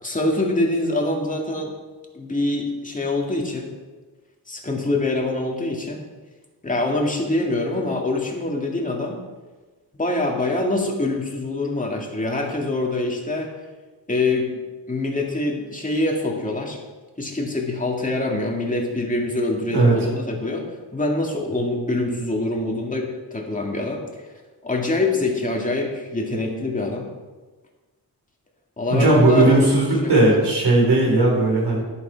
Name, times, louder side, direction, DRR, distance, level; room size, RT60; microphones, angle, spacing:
voice 1, 0.0-1.7 2.1-3.7 4.5-6.0 6.6-9.2 9.9-13.5 14.1-14.5 14.9-16.8 17.2-20.7 20.9-24.0 24.6-27.1 28.8-29.7 30.0-30.4, left 2 dB, 20° left, 0 dB, 2.2 m, -24 dB
voice 2, 28.9-31.8, right 2 dB, 80° right, -3 dB, 4.5 m, -17 dB
11.0 x 11.0 x 4.6 m, 1.3 s
wide cardioid pair, 110°, 39 cm